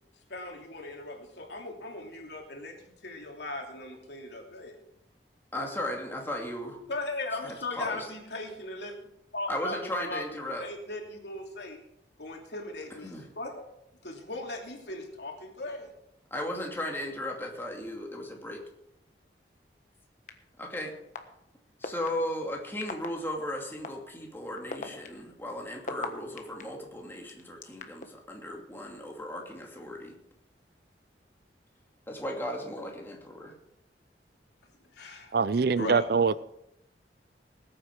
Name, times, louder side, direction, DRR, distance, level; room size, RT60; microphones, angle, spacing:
voice 1, 0.3-2.7 3.0-4.8 6.9-9.0 9.3-10.2 10.5-11.8 12.2-13.7 14.0-15.9 34.9-36.1, left 2 dB, 75° left, 1 dB, 2.9 m, -38 dB
voice 2, 5.5-6.8 7.4-8.1 9.5-10.6 13.0-13.3 16.3-18.6 20.6-20.9 21.8-30.1 32.1-33.5, left 1 dB, 15° left, 0 dB, 2.5 m, -36 dB
sound 1, 20.3-20.4 21.1-21.2 21.8-22.1 22.8-23.1 23.8-23.9 24.6-26.6 27.3-28.1, left 3 dB, 45° left, 1.3 m, -36 dB
voice 3, 35.3-36.4, right 5 dB, 60° right, 18 dB, 0.4 m, -24 dB
20.0 x 8.8 x 4.8 m, 0.81 s
head